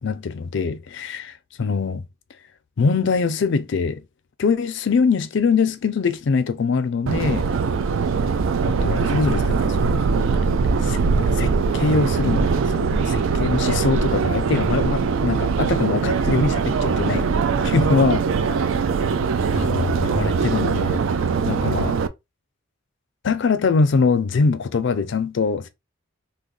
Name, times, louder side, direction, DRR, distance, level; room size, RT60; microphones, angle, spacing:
voice 1, 0.0-2.0 2.8-4.0 4.4-7.5 8.6-10.0 10.8-17.3 17.6-18.7 19.5-21.1 21.4-22.0 23.2-25.7, left 4 dB, 60° left, 0.4 m, -23 dB
Subway metro underground, 7.1-22.1, right 5 dB, 75° right, 0.3 m, -21 dB
2.9 x 2.1 x 3.7 m
head